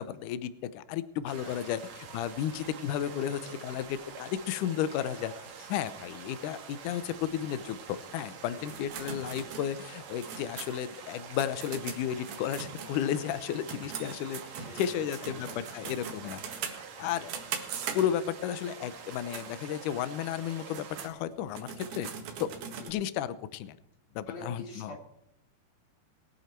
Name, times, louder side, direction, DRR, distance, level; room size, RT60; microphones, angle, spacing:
voice 1, 0.0-1.8 2.1-5.3 5.7-16.4 17.0-17.3 17.9-22.1 22.4-22.5 22.9-23.8 24.2-24.9, left 10 dB, 80° left, 13 dB, 1.8 m, -33 dB
sound 1, 1.3-21.1, right 6 dB, 50° right, 2.6 m, -46 dB
voice 2, 1.4-1.8 3.3-3.4 3.7-3.9 5.4-5.8 8.5-8.8 14.5-17.2 22.8-23.0 24.3-25.1, left 2 dB, 40° left, 1 dB, 4.0 m, -48 dB
sound 2, 8.7-13.4 13.7-18.4 19.0-19.5 19.9-20.0 20.5-22.9, right 7 dB, 65° right, 3.5 m, -41 dB
21.0 x 9.8 x 4.5 m, 0.79 s
omnidirectional pair, 4.7 m